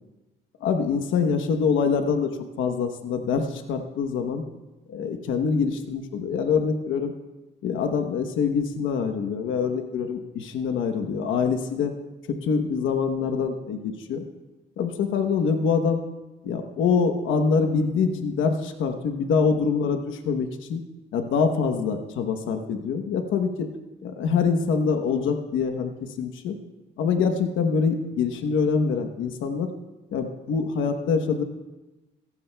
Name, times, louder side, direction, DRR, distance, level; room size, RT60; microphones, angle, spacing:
voice 1, 0.6-4.4 4.9-7.1 7.6-11.9 12.3-14.2 14.8-16.0 16.4-20.8 21.1-23.7 24.0-26.6 27.0-29.7 30.1-31.4, left 5 dB, 80° left, 7 dB, 1.0 m, -25 dB
16.5 x 14.5 x 2.2 m, 1.1 s
cardioid pair, 90°, 20 cm